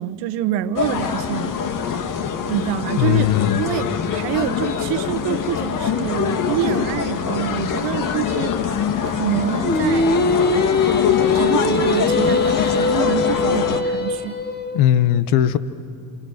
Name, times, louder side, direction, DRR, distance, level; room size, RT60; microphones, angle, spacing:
voice 1, 0.0-1.9 2.5-8.6 9.0-10.2 11.3-14.4, right 12 dB, 65° right, 10 dB, 1.3 m, -26 dB
sound 1, 0.8-13.8, left 7 dB, 45° left, 1.8 m, -24 dB
voice 2, 3.0-3.6 14.7-15.6, left 11 dB, 60° left, 14 dB, 1.3 m, -17 dB
Singing, 9.6-14.8, left 4 dB, 20° left, 2.0 m, -21 dB
29.0 x 27.5 x 6.6 m, 2.6 s
supercardioid pair, 95°, 45 cm